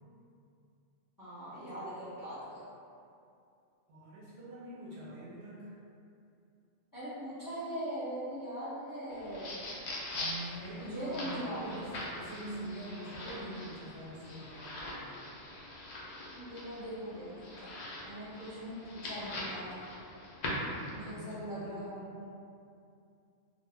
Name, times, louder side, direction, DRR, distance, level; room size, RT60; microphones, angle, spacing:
voice 1, 1.2-2.6 6.9-9.6 10.8-11.9 16.3-17.7 18.0-19.7 20.9-22.2, equal, 20° left, -11 dB, 0.7 m, -41 dB
voice 2, 3.9-5.7 10.1-15.0 20.9-21.9, right 1 dB, 65° right, -7 dB, 0.7 m, -45 dB
sound 1, 9.1-21.1, left 1 dB, 65° left, 0.4 m, -42 dB
2.0 x 2.0 x 3.4 m, 2.5 s
omnidirectional pair, 1.2 m